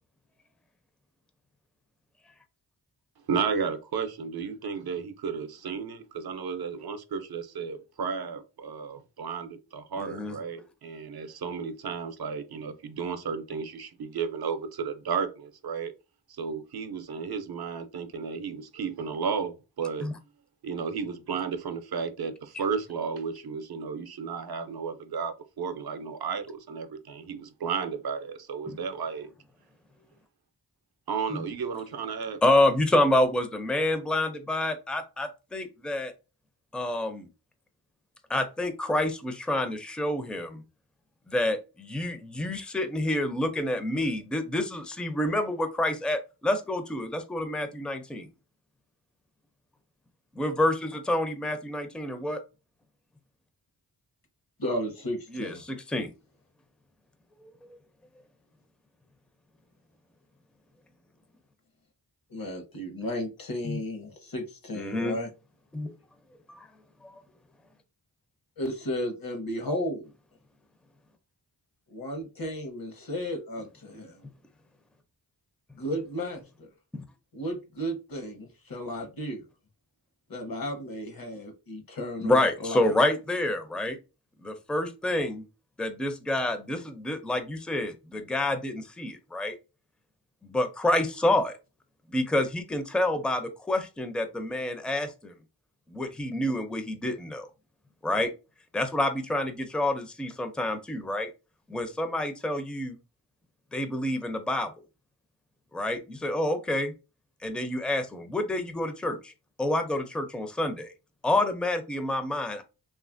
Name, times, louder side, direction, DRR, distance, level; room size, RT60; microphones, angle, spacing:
voice 1, 3.3-15.9 16.3-20.1 20.6-29.3 31.1-32.4, right 6 dB, 65° right, 0.5 m, -33 dB
voice 2, 10.0-10.4 20.0-20.1 28.7-28.8 32.4-36.1 36.7-37.3 38.3-40.6 41.3-48.3 50.4-52.4 55.3-56.1 64.7-65.1 65.7-65.9 66.5-66.7 67.0-67.2 76.9-77.0 82.2-84.0 84.4-85.4 85.8-89.6 90.4-91.6 92.1-95.3 95.9-97.5 98.0-98.3 98.7-101.3 101.7-103.0 103.7-104.7 105.7-106.9 107.4-109.3 109.6-110.9 111.2-112.6, left 1 dB, ahead, 0.4 m, -28 dB
voice 3, 54.6-55.6 62.3-65.3 68.6-70.1 71.9-74.3 75.8-76.7 77.3-79.4 80.3-82.9, equal, 55° left, 0.9 m, -34 dB
2.8 x 2.4 x 2.5 m
cardioid pair, 50°, 42 cm